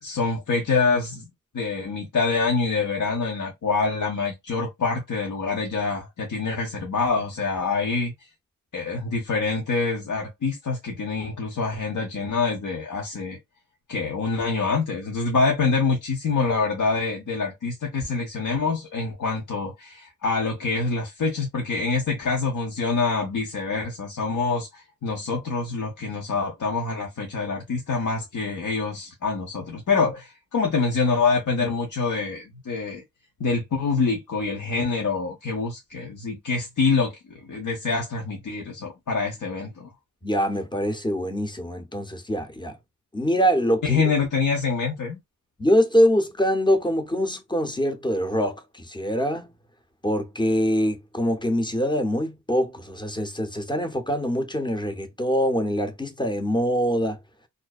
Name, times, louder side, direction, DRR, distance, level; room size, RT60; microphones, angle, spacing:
voice 1, 0.0-8.3 8.7-13.4 13.9-33.0 33.4-39.9 43.8-45.2, left 4 dB, 60° left, 0.8 m, -26 dB
voice 2, 40.2-42.8 43.1-44.0 45.6-49.5 50.0-57.2, equal, 15° left, 0.7 m, -24 dB
2.5 x 2.1 x 2.3 m
cardioid pair, 40°, 34 cm